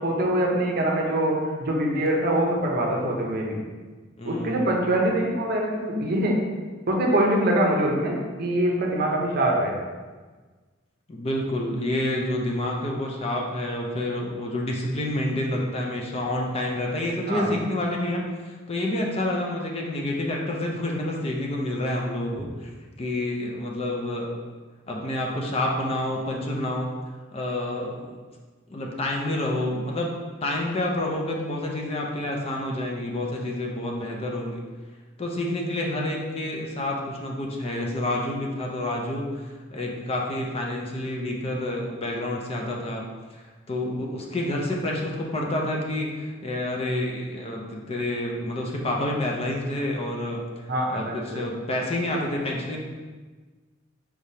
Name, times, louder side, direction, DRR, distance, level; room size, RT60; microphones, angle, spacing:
voice 1, 0.0-3.6 4.3-6.4 6.9-9.7 17.3-17.5 43.8-44.0 50.7-51.5, right 1 dB, 50° right, -1 dB, 0.7 m, -24 dB
voice 2, 4.2-4.7 11.1-22.7 23.0-24.3 24.9-26.9 27.3-28.2 28.7-30.1 30.4-34.6 35.2-43.1 43.3-50.4 50.9-52.8, left 1 dB, 30° left, 0 dB, 0.5 m, -28 dB
4.8 x 3.4 x 2.7 m, 1.4 s
head